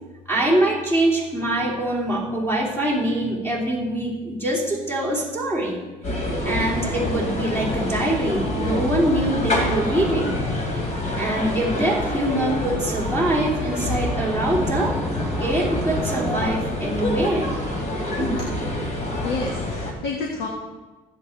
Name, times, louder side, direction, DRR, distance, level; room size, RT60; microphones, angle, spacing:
voice 1, 0.3-5.8 6.1-10.4 11.1-15.0 15.4-17.5 18.6-18.7 19.9-20.0, right 1 dB, 15° left, -5 dB, 3.2 m, -24 dB
sound 1, 6.0-19.9, left 1 dB, 45° left, 2.9 m, -26 dB
sound 2, 13.0-17.8, right 1 dB, 5° right, 0.7 m, -35 dB
voice 2, 19.2-20.5, left 4 dB, 85° left, 0 dB, 1.7 m, -29 dB
15.5 x 7.9 x 3.4 m, 1.2 s
cardioid pair, 110°, 17 cm